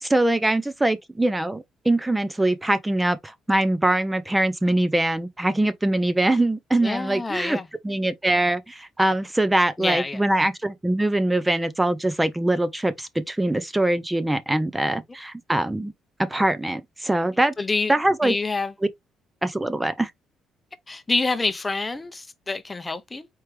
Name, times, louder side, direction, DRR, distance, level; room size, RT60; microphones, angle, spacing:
voice 1, 0.0-7.6 7.8-15.9 16.3-17.5 17.9-18.4 19.4-20.1, right 1 dB, 10° right, 0.7 m, -23 dB
voice 2, 6.8-7.7 9.8-10.2 17.6-17.9 18.2-18.7 20.9-23.3, left 3 dB, 25° left, 0.7 m, -27 dB
4.6 x 3.1 x 3.4 m
supercardioid pair, 70°, 0 cm